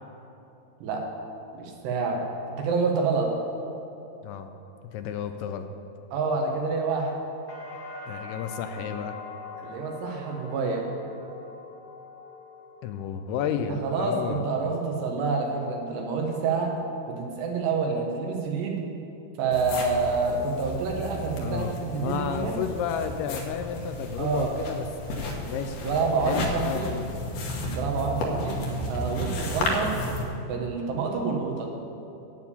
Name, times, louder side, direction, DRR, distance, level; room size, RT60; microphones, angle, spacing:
voice 1, 1.5-3.3 6.1-7.2 9.6-10.9 13.8-16.7 17.1-18.8 19.4-22.6 24.2-24.5 25.8-27.0 27.8-28.6 28.9-30.0 30.4-31.7, right 4 dB, 85° right, 1 dB, 3.5 m, -27 dB
voice 2, 4.9-5.7 8.1-9.2 12.8-14.5 21.4-25.8 26.3-27.1, left 8 dB, 85° left, 7 dB, 2.5 m, -32 dB
sound 1, 7.5-15.4 15.7-16.4, left 3 dB, 45° left, 0.6 m, -44 dB
sound 2, 19.5-30.2, equal, 65° left, 2.3 m, -33 dB
9.2 x 7.5 x 8.5 m, 2.9 s
omnidirectional pair, 4.7 m